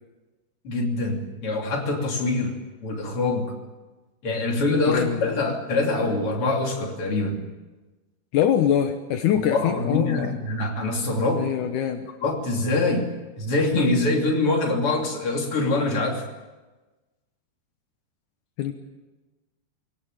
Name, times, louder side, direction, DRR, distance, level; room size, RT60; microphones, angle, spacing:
voice 1, 0.6-2.6 2.8-3.6 4.2-7.4 9.3-11.4 12.2-13.1 13.4-16.2, left 2 dB, 35° left, 2 dB, 3.3 m, -24 dB
voice 2, 4.8-5.5 8.3-10.3 11.4-12.1 18.6-18.7, left 9 dB, 70° left, 6 dB, 1.9 m, -24 dB
22.5 x 18.0 x 9.0 m, 1.2 s
omnidirectional pair, 5.0 m